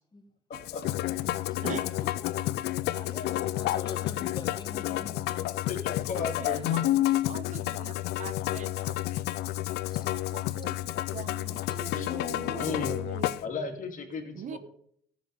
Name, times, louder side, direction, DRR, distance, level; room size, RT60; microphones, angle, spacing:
Musical instrument, 0.5-13.4, left 15 dB, 75° left, 0.5 m, -30 dB
voice 1, 0.5-0.8 5.7-6.8 12.0-12.1 12.6-13.0 13.4-14.6, left 4 dB, 50° left, 2.4 m, -35 dB
voice 2, 1.1-2.3 2.7-5.5 6.3-7.0 7.3-7.4, left 3 dB, 25° left, 1.9 m, -45 dB
voice 3, 6.4-6.8 7.1-9.0 10.1-13.4 14.3-14.6, right 8 dB, 50° right, 0.6 m, -42 dB
14.0 x 7.2 x 5.3 m
cardioid pair, 110°, 17 cm